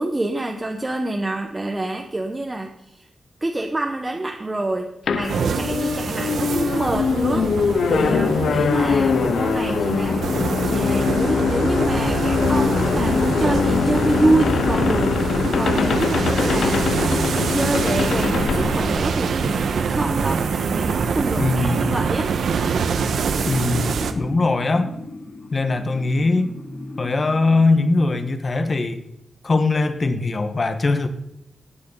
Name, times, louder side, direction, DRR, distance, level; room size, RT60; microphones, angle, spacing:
voice 1, 0.0-3.0 3.4-7.5 7.9-10.3 10.6-17.2 17.5-22.3, right 2 dB, 15° right, 3 dB, 1.0 m, -26 dB
sound 1, 5.1-19.6, left 6 dB, 75° left, 0.6 m, -22 dB
sound 2, 5.3-24.1, right 5 dB, 80° right, 1.1 m, -25 dB
voice 2, 21.4-22.0 23.5-24.9 25.5-26.5 27.0-29.0 29.4-31.1, left 3 dB, 35° left, 9 dB, 1.2 m, -21 dB
sound 3, 22.3-28.3, left 2 dB, 60° left, 4.1 m, -39 dB
17.0 x 9.5 x 5.6 m, 0.84 s
wide cardioid pair, 165°, 0 cm